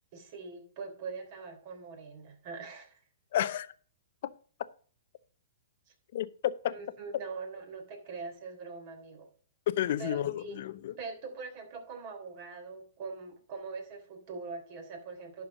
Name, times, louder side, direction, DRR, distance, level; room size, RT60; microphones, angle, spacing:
voice 1, 0.1-3.0 5.9-6.0 6.7-9.3 10.0-10.6 11.0-15.5, right 4 dB, 45° right, 3.5 m, -42 dB
voice 2, 3.3-3.7 6.1-6.7 9.8-10.9, left 11 dB, 60° left, 0.7 m, -31 dB
11.5 x 4.7 x 6.0 m
hypercardioid pair, 135°, 0 cm